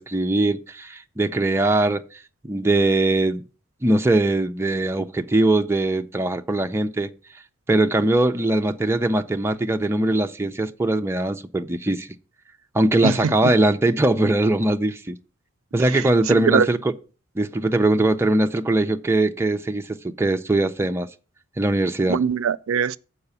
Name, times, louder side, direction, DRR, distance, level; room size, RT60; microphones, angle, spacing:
voice 1, 0.0-2.0 2.4-3.4 3.8-7.1 7.7-12.1 12.7-15.2 15.7-16.9 17.4-21.1 21.6-22.2, right 2 dB, 10° right, 0.4 m, -21 dB
voice 2, 13.0-13.3 16.3-16.7 22.1-23.0, right 6 dB, 80° right, 0.4 m, -21 dB
6.8 x 4.8 x 6.8 m
head